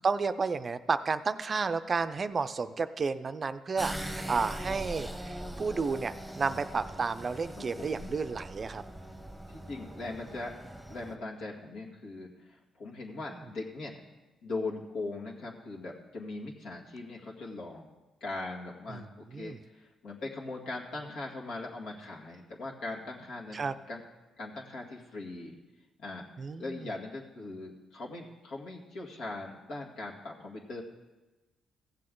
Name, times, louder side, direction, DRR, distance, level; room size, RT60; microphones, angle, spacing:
voice 1, 0.0-8.8 18.9-19.0 19.3-19.6 23.5-23.7 26.4-26.8, right 4 dB, 35° right, 11 dB, 0.4 m, -31 dB
sound 1, 3.8-11.2, right 1 dB, ahead, 1.0 m, -41 dB
voice 2, 7.5-8.1 9.5-10.5 10.9-14.0 14.4-17.9 18.2-24.0 24.4-25.6 26.0-26.3 26.6-30.8, left 2 dB, 80° left, -2 dB, 2.0 m, -40 dB
15.0 x 7.7 x 3.8 m, 1.1 s
cardioid pair, 90°, 0 cm